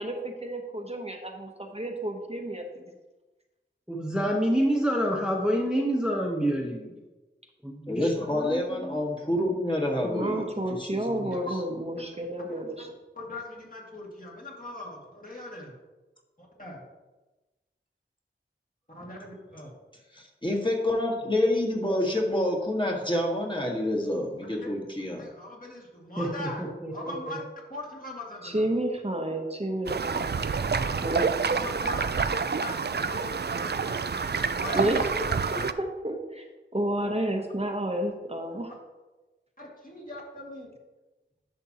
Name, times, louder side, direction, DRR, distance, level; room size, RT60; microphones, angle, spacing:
voice 1, 0.0-2.9 10.0-12.9 28.4-30.2 31.0-31.2 34.7-35.1 35.5-36.5 36.7-38.7, right 1 dB, 30° right, 2 dB, 0.9 m, -30 dB
voice 2, 3.9-7.0 7.6-9.0 26.2-27.4, equal, 5° right, -1 dB, 1.0 m, -28 dB
voice 3, 7.9-11.3 20.1-25.2, left 1 dB, 25° left, -1 dB, 1.6 m, -28 dB
voice 4, 11.1-11.5 11.9-12.0 12.5-15.8 16.4-16.8 18.9-19.7 24.6-24.7 25.2-26.6 26.9-27.4 27.7-28.7 31.0-31.1 31.5-34.2 34.6-35.7 39.6-40.7, left 2 dB, 45° left, -3 dB, 2.2 m, -41 dB
sound 1, 29.9-35.7, right 5 dB, 55° right, 0.4 m, -28 dB
11.0 x 6.1 x 2.9 m, 1.2 s
wide cardioid pair, 45°, 20 cm